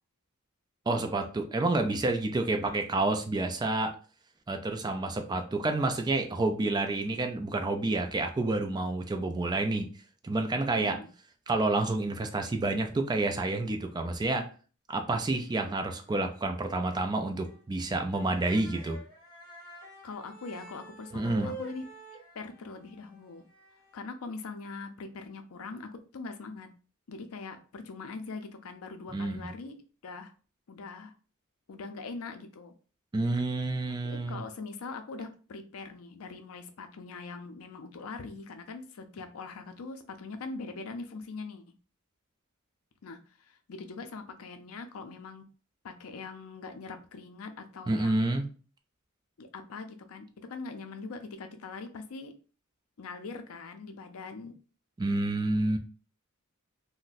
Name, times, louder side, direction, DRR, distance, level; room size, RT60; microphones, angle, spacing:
voice 1, 0.9-4.0 4.5-9.9 10.2-11.0 11.5-14.5 14.9-19.0 21.1-21.5 29.1-29.5 33.1-34.4 47.9-48.5 55.0-55.8, right 2 dB, 20° right, 5 dB, 0.3 m, -29 dB
voice 2, 10.7-11.1 20.0-21.9 22.3-23.5 23.9-26.7 27.1-30.3 30.7-31.1 31.7-32.7 34.0-41.6 43.0-45.5 45.8-48.4 49.4-52.3 53.0-54.6, left 4 dB, 70° left, 7 dB, 0.5 m, -42 dB
sound 1, 15.5-16.1 16.4-16.5 16.9-17.1 17.4-17.6 17.9-23.9, right 2 dB, 20° left, 1.3 m, -48 dB
2.5 x 2.1 x 3.9 m, 0.38 s
head